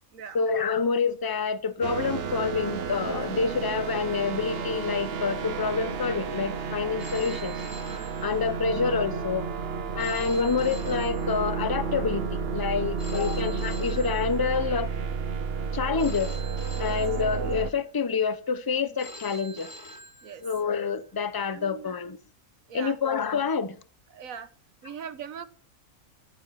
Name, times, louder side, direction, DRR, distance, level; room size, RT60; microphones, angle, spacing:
voice 1, 0.3-7.6 8.2-9.5 9.9-14.9 15.7-16.3 16.8-19.7 20.4-22.2 22.7-23.8, left 5 dB, 20° left, 0.6 m, -27 dB
sound 1, 1.8-17.7, right 5 dB, 50° right, 1.0 m, -32 dB
Telephone, 7.0-8.9 10.0-11.9 13.0-14.9 16.0-17.8 19.0-20.8, equal, 60° left, 2.2 m, -46 dB
voice 2, 21.5-21.9 22.7-23.0 24.1-24.5 24.8-25.5, right 7 dB, 70° right, 1.4 m, -40 dB
14.0 x 10.0 x 5.8 m
omnidirectional pair, 1.5 m